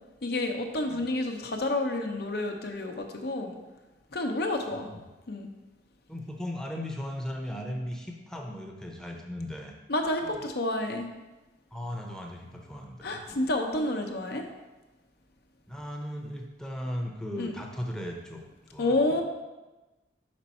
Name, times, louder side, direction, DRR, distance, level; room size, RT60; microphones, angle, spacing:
voice 1, 0.2-3.5 4.1-4.9 5.3-5.5 9.9-11.1 13.0-14.5 17.4-17.5 18.8-19.2, left 2 dB, 60° left, 4 dB, 0.8 m, -29 dB
voice 2, 4.7-5.0 6.1-9.7 10.2-10.5 11.7-13.2 15.7-19.2, equal, 5° left, 1 dB, 0.7 m, -37 dB
5.3 x 5.3 x 4.2 m, 1.1 s
head